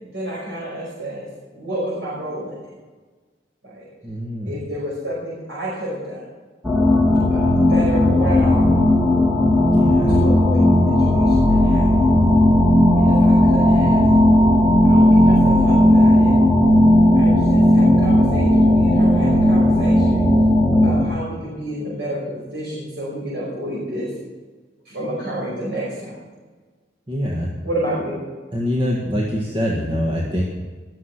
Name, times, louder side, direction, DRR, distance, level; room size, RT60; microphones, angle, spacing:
voice 1, 0.0-1.3 1.5-2.6 3.6-3.9 4.4-6.3 7.3-8.8 9.8-12.1 13.0-14.0 14.8-16.3 17.1-20.2 20.7-24.1 24.9-26.2 27.6-28.2, right 1 dB, 75° right, -6 dB, 5.4 m, -30 dB
voice 2, 4.0-4.5 7.7-7.8 9.7-10.2 13.0-13.1 27.1-27.5 28.5-30.4, equal, 30° right, -3 dB, 1.7 m, -24 dB
sound 1, 6.6-21.0, left 1 dB, 5° right, 2.4 m, -15 dB
19.5 x 7.5 x 6.0 m, 1.4 s
head